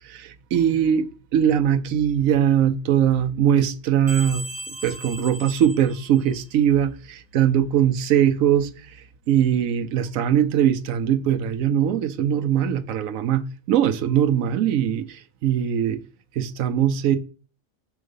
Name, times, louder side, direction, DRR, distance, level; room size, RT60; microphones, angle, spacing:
voice 1, 0.0-4.4 4.8-8.7 9.3-16.0 16.4-17.2, right 9 dB, 90° right, 1.1 m, -21 dB
sound 1, 4.1-6.6, right 1 dB, 30° right, 1.0 m, -37 dB
7.2 x 3.8 x 5.3 m
omnidirectional pair, 1.4 m